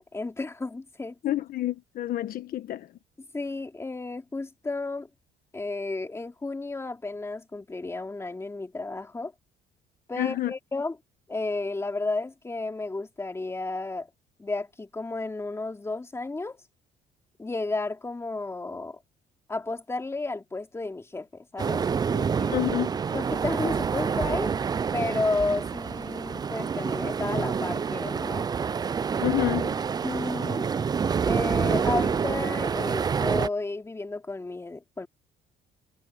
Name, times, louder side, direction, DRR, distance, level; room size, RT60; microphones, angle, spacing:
voice 1, 0.0-1.2 3.3-5.1 5.5-9.3 10.1-11.0 11.3-14.1 14.4-16.6 17.4-19.0 19.5-22.7 23.1-24.5 24.9-28.5 30.0-30.7 31.3-35.1, left 3 dB, 15° left, 2.8 m, -32 dB
voice 2, 1.2-2.9 10.2-10.5 22.5-23.0 29.2-29.7, left 14 dB, 60° left, 1.2 m, -28 dB
sound 1, 21.6-33.5, right 6 dB, 25° right, 0.4 m, -27 dB
cardioid pair, 110°, 17 cm